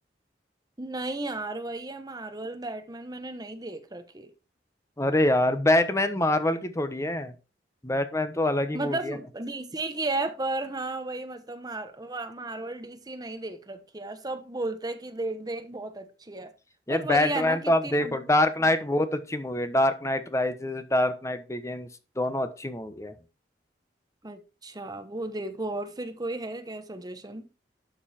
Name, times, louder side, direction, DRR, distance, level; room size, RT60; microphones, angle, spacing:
voice 1, 0.8-4.3 8.7-16.5 16.9-18.1 24.2-27.5, right 2 dB, 20° right, 1.1 m, -34 dB
voice 2, 5.0-7.3 7.8-9.2 16.9-21.9 22.2-23.1, left 1 dB, 15° left, 1.0 m, -25 dB
12.0 x 5.5 x 4.3 m
head